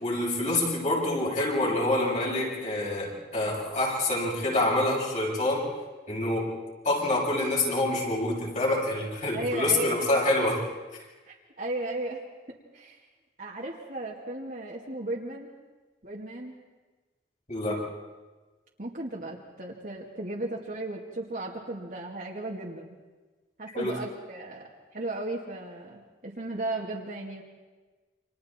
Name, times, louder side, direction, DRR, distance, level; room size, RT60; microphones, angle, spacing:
voice 1, 0.0-5.7 6.1-6.5 6.8-10.6 17.5-17.8 23.7-24.0, left 2 dB, 45° left, -3 dB, 7.4 m, -26 dB
voice 2, 9.3-10.1 11.3-12.2 12.7-13.0 13.4-15.5 16.0-16.6 18.8-23.0 23.6-27.4, right 2 dB, 50° right, -4 dB, 2.3 m, -35 dB
29.5 x 26.5 x 4.5 m, 1.3 s
head